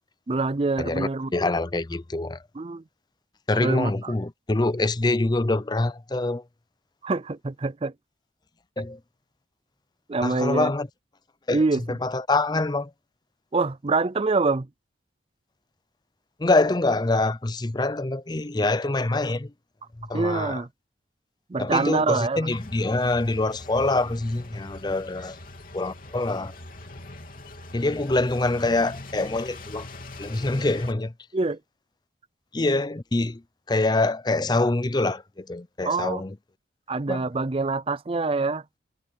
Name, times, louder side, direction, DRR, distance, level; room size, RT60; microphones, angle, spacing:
voice 1, 0.3-1.3 2.6-2.8 3.5-4.1 7.0-7.9 10.1-10.7 11.5-12.0 13.5-14.7 20.1-20.7 21.5-22.5 31.3-31.6 35.8-36.2 36.9-38.6, right 3 dB, 30° right, 0.5 m, -25 dB
voice 2, 0.8-2.4 3.5-6.4 8.8-9.0 10.2-10.9 11.5-12.9 16.4-19.5 20.0-20.6 21.6-25.4 25.7-26.5 27.7-29.9 30.2-31.1 32.5-33.4 33.7-36.4 37.1-37.2, left 2 dB, 25° left, 0.6 m, -25 dB
sound 1, 22.5-30.9, left 2 dB, 50° left, 3.3 m, -42 dB
head